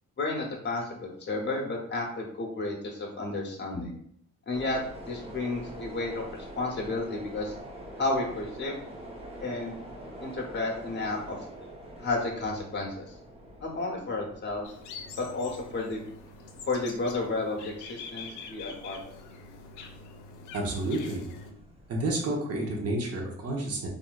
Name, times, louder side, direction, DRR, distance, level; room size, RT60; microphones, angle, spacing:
voice 1, 0.2-4.0 4.5-4.8 5.1-7.5 8.0-8.8 9.4-9.8 10.2-11.4 12.0-13.1 13.6-14.7 15.2-16.0 16.7-19.0, left 2 dB, 35° left, 0 dB, 0.8 m, -32 dB
sound 1, 4.5-22.0, right 1 dB, 20° right, 0.7 m, -46 dB
sound 2, 14.6-21.5, left 4 dB, 85° left, 0.5 m, -45 dB
voice 2, 20.5-21.2 21.9-23.9, right 1 dB, 55° right, 0 dB, 0.9 m, -30 dB
3.3 x 2.5 x 2.3 m, 0.66 s
cardioid pair, 90°, 30 cm